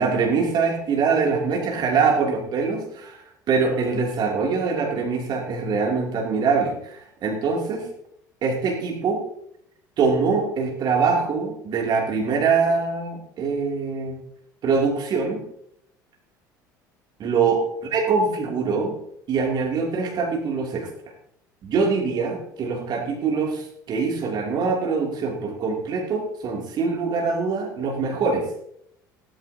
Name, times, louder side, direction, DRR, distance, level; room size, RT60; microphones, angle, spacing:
voice 1, 0.0-7.9 8.4-9.2 10.0-14.2 14.6-15.4 17.2-17.6 17.9-18.9 19.3-20.9 21.6-28.5, right 5 dB, 45° right, -1 dB, 2.8 m, -23 dB
16.0 x 13.5 x 2.8 m, 0.74 s
figure-of-eight pair, 65°, 10 cm